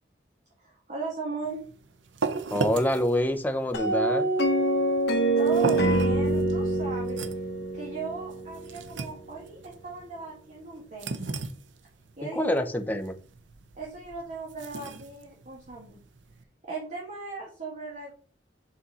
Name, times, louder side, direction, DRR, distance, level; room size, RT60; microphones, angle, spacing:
voice 1, 0.6-1.6 5.3-7.2 7.7-11.3 12.2-12.5 13.7-16.0 16.6-18.1, right 3 dB, 45° right, 1.6 m, -37 dB
sound 1, 1.4-16.4, right 4 dB, 90° right, 0.7 m, -37 dB
voice 2, 2.5-4.3 12.2-13.2, left 1 dB, 10° left, 0.7 m, -26 dB
sound 2, 3.7-8.9, right 2 dB, 65° left, 1.1 m, -25 dB
6.8 x 4.2 x 4.1 m
head